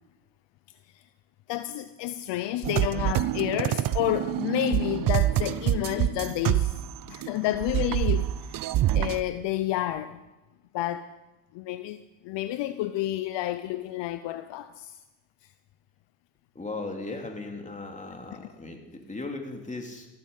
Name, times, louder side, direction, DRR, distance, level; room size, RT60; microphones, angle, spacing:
voice 1, 1.5-6.8 7.1-8.6 8.9-10.2 10.7-11.1 11.5-15.0 18.4-18.5, left 14 dB, 60° left, 0.9 m, -30 dB
sound 1, 2.6-7.3 7.5-9.2, right 13 dB, 45° right, 0.7 m, -26 dB
voice 2, 16.5-20.1, left 3 dB, 15° left, 3.2 m, -37 dB
14.5 x 13.5 x 5.6 m
supercardioid pair, 85°, 49 cm